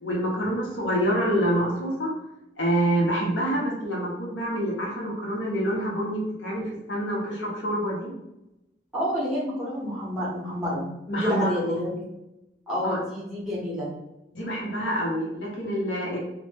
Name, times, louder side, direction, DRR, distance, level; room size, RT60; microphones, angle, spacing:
voice 1, 0.0-2.1 2.6-8.1 11.1-11.6 12.8-13.0 14.3-16.2, equal, 80° left, -3 dB, 0.6 m, -26 dB
voice 2, 8.9-10.8 11.1-12.0 12.7-13.9, equal, 5° right, -8 dB, 0.8 m, -29 dB
2.0 x 2.0 x 3.2 m, 0.90 s
head